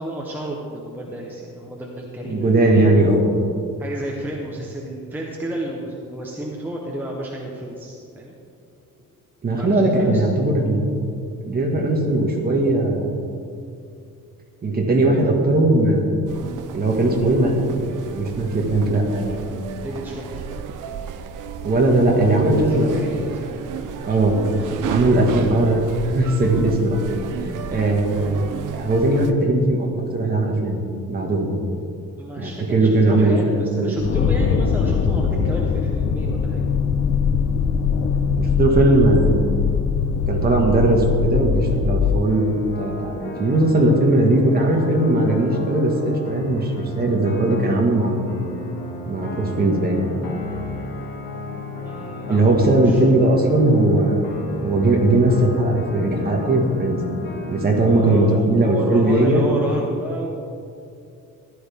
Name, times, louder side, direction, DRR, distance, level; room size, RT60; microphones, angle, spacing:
voice 1, 0.0-2.9 3.8-8.3 9.5-10.4 19.7-20.4 22.5-24.2 24.5-25.1 32.2-36.7 51.8-53.0 57.8-60.4, right 1 dB, 5° right, -2 dB, 0.9 m, -32 dB
voice 2, 2.2-3.2 9.4-10.9 11.5-13.2 14.6-16.1 16.7-19.6 21.6-22.9 24.0-24.4 24.9-28.4 28.7-29.9 30.1-30.8 31.1-31.5 32.4-34.0 38.4-39.6 40.3-48.2 49.0-50.1 52.3-54.3 54.6-57.0 57.5-59.4, right 2 dB, 30° right, 0 dB, 1.6 m, -19 dB
sound 1, 16.3-29.3, right 7 dB, 70° right, 0.8 m, -33 dB
sound 2, 34.0-42.3, left 6 dB, 35° left, 0.5 m, -21 dB
sound 3, 42.3-58.2, left 2 dB, 80° left, 2.2 m, -33 dB
14.5 x 11.5 x 3.6 m, 2.5 s
cardioid pair, 175°, 33 cm